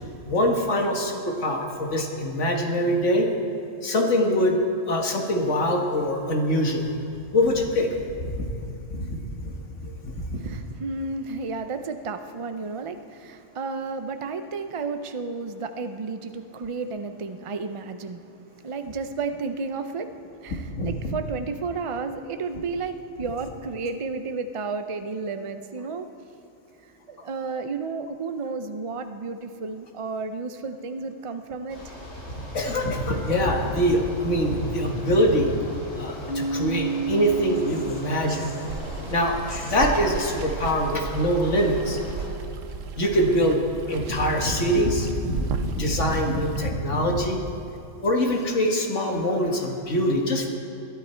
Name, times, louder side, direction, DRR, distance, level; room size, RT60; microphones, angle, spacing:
voice 1, 0.3-3.3 3.8-4.6 4.9-6.9 7.3-7.9 8.2-8.5 8.9-9.5 9.8-10.3 20.8-21.2 32.4-35.5 36.0-38.5 39.1-42.0 43.0-43.6 43.9-47.4 48.0-50.5, equal, 70° left, 2 dB, 1.9 m, -24 dB
voice 2, 10.3-26.1 26.8-31.9, right 4 dB, 50° right, 8 dB, 0.3 m, -32 dB
Bicycle, 31.7-42.3, left 1 dB, 90° left, 3.4 m, -39 dB
Keyboard (musical), 36.3-38.9, right 4 dB, 50° left, 1.3 m, -31 dB
Water, 38.7-46.7, right 5 dB, 85° right, 1.1 m, -34 dB
21.5 x 11.5 x 4.4 m, 2.9 s
omnidirectional pair, 1.3 m